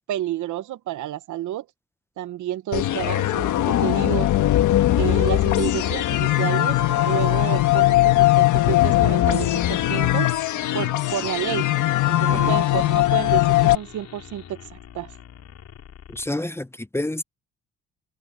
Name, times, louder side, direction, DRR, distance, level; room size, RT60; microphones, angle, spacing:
voice 1, 0.1-1.6 2.2-4.3 4.9-6.8 7.0-10.3 10.7-11.7 12.1-14.6 14.9-15.1, right 12 dB, 75° right, 1.1 m, -30 dB
sound 1, 2.7-13.7, left 15 dB, 80° left, 1.5 m, -20 dB
sound 2, 9.1-16.3, left 9 dB, 60° left, 4.5 m, -45 dB
voice 2, 16.1-17.2, left 1 dB, 10° left, 0.8 m, -29 dB
cardioid pair, 90°, 30 cm